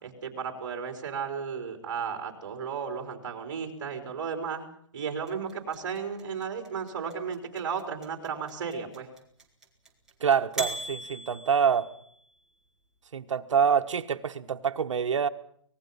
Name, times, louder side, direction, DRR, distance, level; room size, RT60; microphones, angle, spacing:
voice 1, 0.0-4.6 4.9-9.1, right 6 dB, 40° right, 4 dB, 4.0 m, -34 dB
sound 1, 5.3-12.3, right 2 dB, 5° right, 2.0 m, -39 dB
voice 2, 10.2-11.9 13.1-15.3, right 7 dB, 75° right, 7 dB, 1.3 m, -26 dB
25.0 x 19.5 x 5.6 m, 0.65 s
hypercardioid pair, 170°, 16 cm